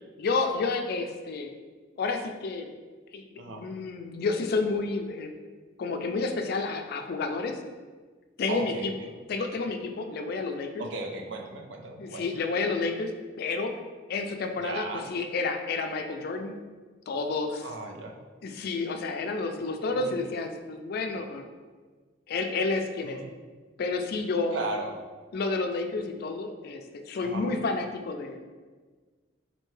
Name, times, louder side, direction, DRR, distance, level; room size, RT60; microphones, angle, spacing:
voice 1, 0.2-1.5 2.0-2.7 3.1-5.3 5.8-7.6 8.4-8.9 9.3-10.8 12.0-13.1 13.4-13.7 14.1-16.5 17.1-17.7 18.4-21.4 22.3-23.2 23.8-24.6 25.3-28.4, left 3 dB, 55° left, 5 dB, 0.4 m, -30 dB
voice 2, 8.5-9.1 10.8-12.3 14.6-15.1 17.6-18.2 19.9-20.1 23.0-23.3 24.5-24.9 27.2-27.5, right 2 dB, 65° right, 3 dB, 0.5 m, -36 dB
4.3 x 2.7 x 3.1 m, 1.4 s
head